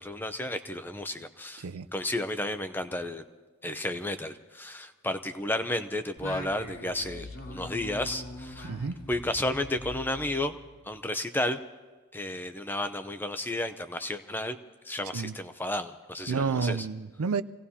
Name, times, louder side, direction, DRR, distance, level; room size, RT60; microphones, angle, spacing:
voice 1, 0.0-3.2 3.6-8.7 9.1-10.6 10.8-11.6 12.1-14.6 14.8-16.9, left 1 dB, 10° left, 0.6 m, -32 dB
Singing, 6.2-10.9, left 1 dB, 65° left, 2.4 m, -42 dB
voice 2, 8.6-9.0 15.1-15.4 16.3-17.4, right 5 dB, 85° right, 0.5 m, -30 dB
27.0 x 17.5 x 2.8 m
head